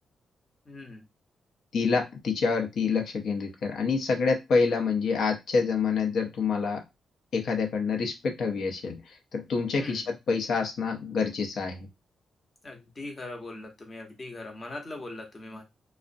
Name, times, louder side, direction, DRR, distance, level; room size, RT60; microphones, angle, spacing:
voice 1, 0.7-1.1 9.8-10.1 12.6-15.6, left 2 dB, 30° left, 2 dB, 0.8 m, -40 dB
voice 2, 1.7-6.8 7.3-9.0 9.3-11.8, left 5 dB, 75° left, 3 dB, 0.6 m, -27 dB
2.4 x 2.0 x 2.5 m, 0.21 s
cardioid pair, 90°, 0 cm